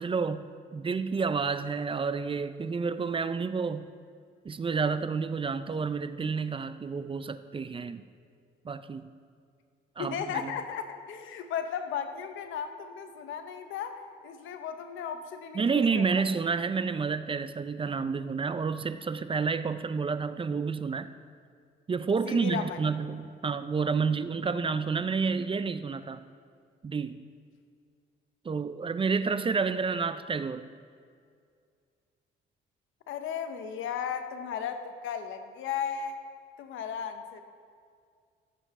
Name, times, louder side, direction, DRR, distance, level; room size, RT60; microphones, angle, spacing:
voice 1, 0.0-3.9 4.4-8.0 8.6-9.1 10.0-10.5 15.5-21.1 21.9-26.2 26.8-27.2 28.4-30.7, right 5 dB, 25° right, 12 dB, 0.4 m, -30 dB
voice 2, 10.0-16.2 22.3-22.8 33.1-36.2 36.6-37.4, left 7 dB, 85° left, 8 dB, 0.9 m, -35 dB
15.0 x 7.6 x 3.6 m, 2.2 s
cardioid pair, 90°, 20 cm